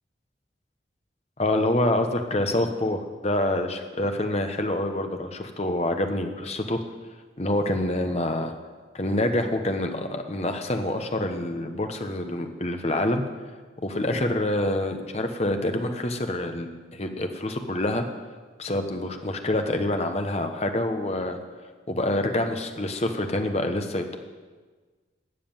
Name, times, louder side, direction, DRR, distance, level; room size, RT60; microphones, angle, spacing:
voice 1, 1.4-6.8 7.4-8.5 8.9-13.2 13.8-18.0 18.6-21.4 21.9-24.2, left 1 dB, 35° left, 6 dB, 1.2 m, -26 dB
13.0 x 7.7 x 9.0 m, 1.4 s
head